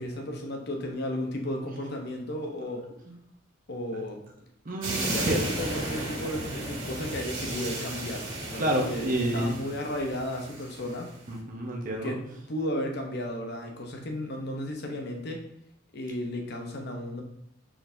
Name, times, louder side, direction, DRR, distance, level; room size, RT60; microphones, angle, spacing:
voice 1, 0.0-2.9 3.7-4.3 5.0-11.1 12.0-15.4 15.9-17.2, left 1 dB, 50° left, 3 dB, 0.7 m, -34 dB
voice 2, 4.7-5.4 8.6-9.6 11.3-12.2, right 1 dB, 40° right, 0 dB, 0.8 m, -28 dB
sound 1, 4.8-11.1, right 2 dB, 75° right, 1.6 m, -34 dB
4.6 x 3.9 x 2.6 m, 0.76 s
head